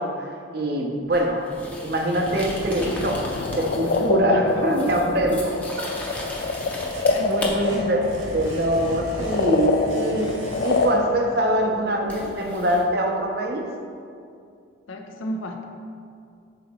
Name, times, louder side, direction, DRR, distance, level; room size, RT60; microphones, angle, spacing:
voice 1, 0.0-1.5 1.8-5.6 7.2-13.6, right 1 dB, 50° right, 2 dB, 0.6 m, -24 dB
sound 1, 1.1-4.2 4.5-7.5 10.7-10.8 12.1-12.8, left 1 dB, 5° left, 0.6 m, -36 dB
sound 2, 2.8-12.3, left 3 dB, 50° left, 0.3 m, -26 dB
sound 3, 5.0-5.8 6.3-11.3, right 1 dB, 85° right, 0.9 m, -42 dB
voice 2, 7.1-8.0 14.9-15.7, equal, 90° left, 3 dB, 0.6 m, -33 dB
6.2 x 3.9 x 4.2 m, 2.3 s
head